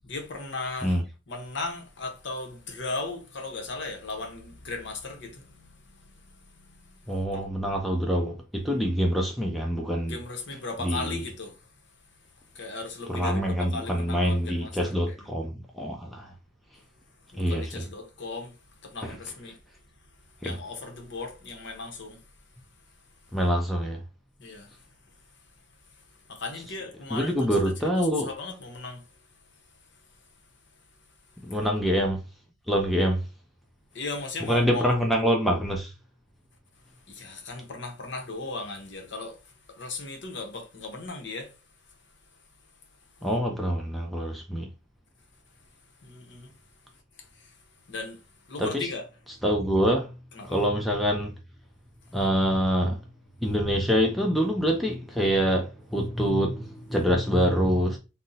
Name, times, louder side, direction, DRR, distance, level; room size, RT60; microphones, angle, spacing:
voice 1, 0.0-1.0 1.3-7.4 10.0-11.7 12.5-15.1 17.3-19.6 20.4-22.3 24.4-24.7 26.3-27.5 28.0-29.0 31.6-31.8 33.9-35.0 37.1-41.6 43.2-43.3 46.0-46.5 47.2-47.6 47.9-49.1 50.3-50.6, left 3 dB, 60° left, 0.8 m, -37 dB
voice 2, 7.1-10.2 10.8-11.2 13.1-16.3 17.4-17.8 19.0-19.2 20.4-20.5 23.3-24.0 27.1-28.3 31.4-32.2 32.7-33.2 34.5-35.9 43.2-44.7 48.6-48.9 49.4-50.1 50.4-51.3 52.1-53.0 53.4-58.0, equal, ahead, 0.4 m, -25 dB
2.6 x 2.0 x 3.8 m
head